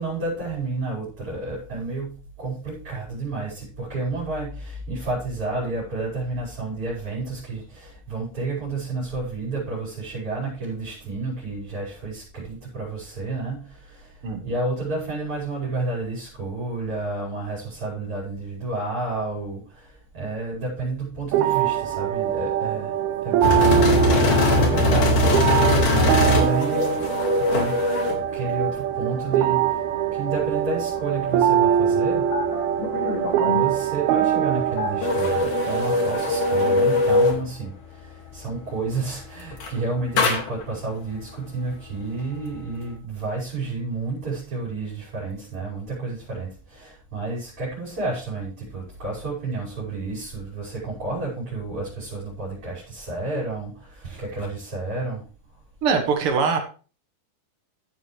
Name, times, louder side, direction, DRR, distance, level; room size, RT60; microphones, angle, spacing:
voice 1, 0.0-24.0 24.5-27.2 27.5-27.9 28.3-29.8 30.1-32.3 33.5-55.2, right 3 dB, 35° right, -6 dB, 6.1 m, -31 dB
sound 1, 21.3-37.3, right 10 dB, 80° right, 2.6 m, -23 dB
sound 2, 23.4-28.2 32.3-33.7 34.8-37.4 39.5-39.8 40.2-40.6, left 2 dB, 60° left, 3.5 m, -21 dB
voice 2, 55.8-56.6, right 5 dB, 50° right, 4 dB, 1.8 m, -22 dB
15.5 x 7.7 x 3.3 m, 0.36 s
omnidirectional pair, 4.4 m